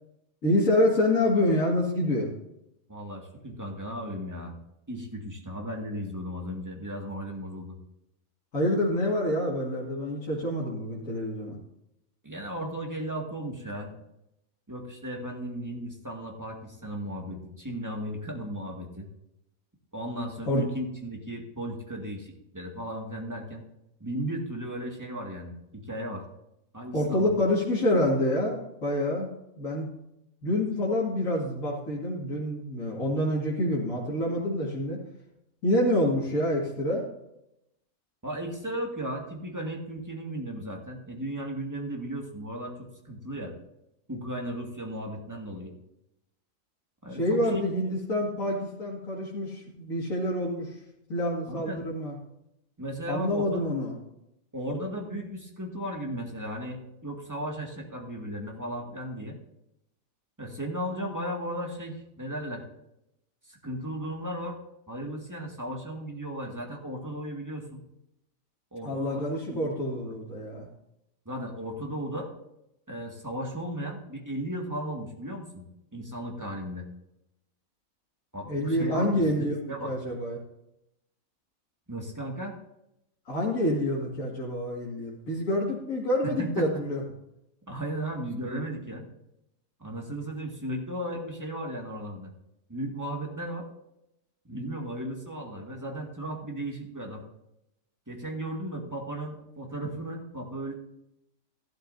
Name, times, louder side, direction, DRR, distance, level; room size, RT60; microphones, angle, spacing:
voice 1, 0.4-2.3 8.5-11.6 20.5-20.6 26.9-29.3 29.6-29.9 30.4-35.0 35.6-37.0 47.2-50.8 51.1-52.2 53.1-53.9 68.8-70.7 78.4-80.4 83.3-87.0, left 1 dB, 75° left, -6 dB, 2.6 m, -27 dB
voice 2, 2.9-4.6 4.9-7.8 12.2-14.0 14.7-19.1 19.9-23.6 24.0-26.2 26.7-27.3 38.2-43.5 44.1-45.7 47.0-47.9 51.5-51.9 52.8-53.6 54.5-59.4 60.4-62.6 63.5-64.6 64.9-67.8 68.7-69.6 71.3-72.3 72.9-75.6 75.9-76.9 78.3-79.1 79.7-79.9 81.9-82.6 86.2-86.8 87.7-89.1 89.8-92.3 92.7-93.7 94.5-97.2 98.1-100.8, right 1 dB, 15° right, 0 dB, 2.0 m, -35 dB
13.5 x 12.0 x 2.7 m, 0.84 s
omnidirectional pair, 1.4 m